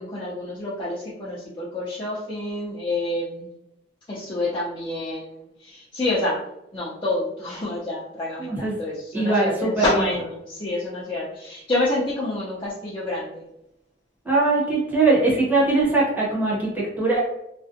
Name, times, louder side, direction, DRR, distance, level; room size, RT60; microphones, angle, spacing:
voice 1, 0.0-3.5 4.1-6.4 6.7-13.4, left 2 dB, 25° left, -9 dB, 0.4 m, -28 dB
voice 2, 8.4-8.8 9.1-9.8 14.2-17.3, right 3 dB, 10° right, -6 dB, 0.7 m, -21 dB
2.5 x 2.1 x 2.4 m, 0.82 s
head